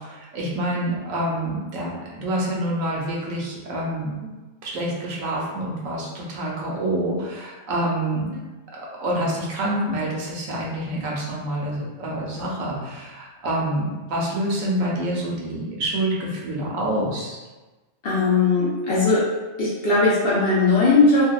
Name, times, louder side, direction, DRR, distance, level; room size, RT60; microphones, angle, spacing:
voice 1, 0.0-4.3 4.6-8.4 8.7-17.4, right 1 dB, 80° right, -4 dB, 1.0 m, -27 dB
voice 2, 18.0-19.2 19.6-21.3, left 3 dB, 65° left, -7 dB, 0.6 m, -19 dB
2.6 x 2.1 x 2.2 m, 1.2 s
omnidirectional pair, 1.4 m